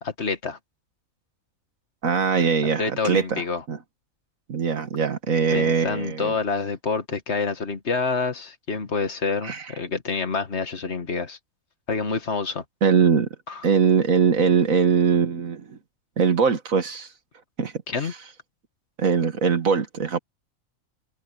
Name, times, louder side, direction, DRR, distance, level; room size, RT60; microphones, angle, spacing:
voice 1, 0.0-0.6 2.8-3.6 5.5-11.4 11.9-12.6 13.5-13.6 17.9-18.1, left 4 dB, 55° left, 1.9 m, -27 dB
voice 2, 2.0-3.4 3.7-3.8 4.5-6.3 9.4-9.6 12.8-13.3 13.6-15.8 16.2-17.1 17.6-17.7 19.0-20.2, right 6 dB, 80° right, 1.9 m, -21 dB
omnidirectional pair, 1.4 m